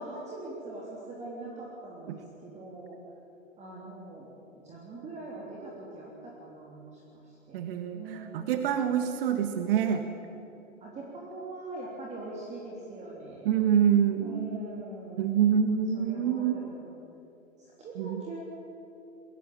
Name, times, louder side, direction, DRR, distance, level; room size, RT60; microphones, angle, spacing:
voice 1, 0.0-3.0 3.6-4.3 4.6-7.6 7.9-8.7 10.8-13.6 14.2-15.3 15.9-16.9 17.6-18.4, right 2 dB, 15° right, -3 dB, 3.4 m, -42 dB
voice 2, 7.5-10.0 13.4-14.5 15.2-16.6 18.0-18.2, right 8 dB, 40° right, 7 dB, 1.6 m, -26 dB
21.5 x 17.5 x 8.8 m, 2.8 s
hypercardioid pair, 125°, 41 cm